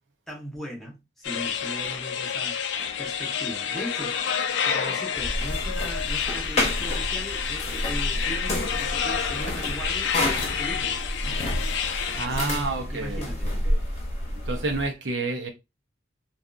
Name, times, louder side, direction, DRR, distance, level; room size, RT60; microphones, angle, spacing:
voice 1, 0.3-4.2 4.6-11.0 12.2-13.5, equal, ahead, 0.9 m, -38 dB
sound 1, 1.2-12.3, left 7 dB, 80° left, 0.4 m, -29 dB
sound 2, 5.1-14.9, left 1 dB, 35° left, 0.8 m, -29 dB
voice 2, 12.2-13.8 14.5-15.5, right 3 dB, 75° right, 0.7 m, -30 dB
2.7 x 2.4 x 2.3 m
head